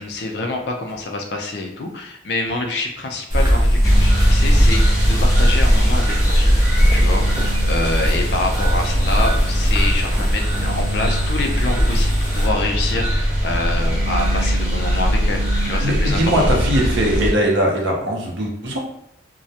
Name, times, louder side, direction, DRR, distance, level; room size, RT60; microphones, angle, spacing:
voice 1, 0.0-6.6 6.9-16.4, left 2 dB, 60° left, 2 dB, 0.4 m, -26 dB
sound 1, 3.3-12.5, equal, 20° right, 0.5 m, -20 dB
sound 2, 3.8-17.3, equal, 20° left, 0.7 m, -20 dB
voice 2, 15.8-18.8, equal, 80° right, 0 dB, 0.6 m, -20 dB
2.2 x 2.0 x 2.7 m, 0.79 s
head